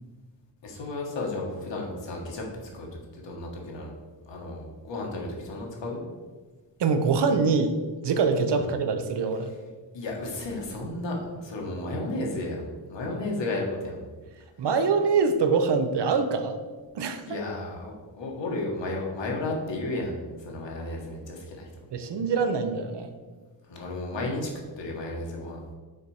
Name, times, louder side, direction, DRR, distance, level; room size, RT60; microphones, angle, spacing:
voice 1, 0.6-2.4 2.7-2.9 3.1-3.9 4.3-6.0 8.5-8.7 9.9-14.0 17.3-21.7 23.7-24.5 24.8-25.6, left 2 dB, 75° left, -1 dB, 1.6 m, -33 dB
voice 2, 6.8-7.8 8.0-9.5 14.6-16.6 16.9-17.2 21.9-23.1, right 4 dB, 70° right, 8 dB, 0.8 m, -24 dB
6.6 x 4.1 x 4.9 m, 1.4 s
wide cardioid pair, 165°, 43 cm